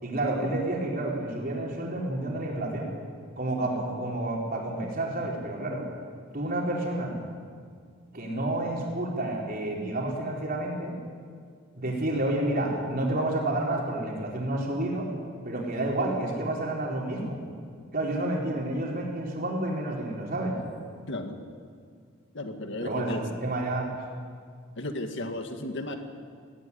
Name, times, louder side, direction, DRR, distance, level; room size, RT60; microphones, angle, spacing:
voice 1, 0.0-2.9 3.4-5.8 6.3-7.2 8.1-11.0 11.7-15.1 15.4-17.4 17.9-20.6 22.8-23.9, right 1 dB, 45° right, -2 dB, 4.6 m, -30 dB
voice 2, 22.3-23.2 24.8-26.0, left 1 dB, 55° left, 5 dB, 2.0 m, -34 dB
18.5 x 17.5 x 10.0 m, 2.1 s
head